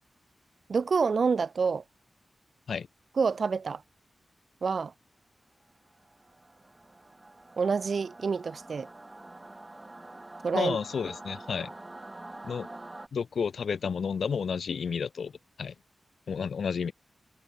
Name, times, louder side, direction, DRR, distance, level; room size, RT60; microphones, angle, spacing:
voice 1, 0.7-1.8 3.2-3.8 4.6-4.9 7.6-8.9 10.4-10.8, right 5 dB, 70° right, 0.9 m, -27 dB
Singing / Musical instrument, 5.9-13.1, right 2 dB, 25° right, 1.7 m, -46 dB
voice 2, 10.5-11.7 12.4-12.7 13.1-15.3 15.6-15.7 16.3-16.9, left 6 dB, 85° left, 0.9 m, -31 dB
cardioid pair, 55°, 0 cm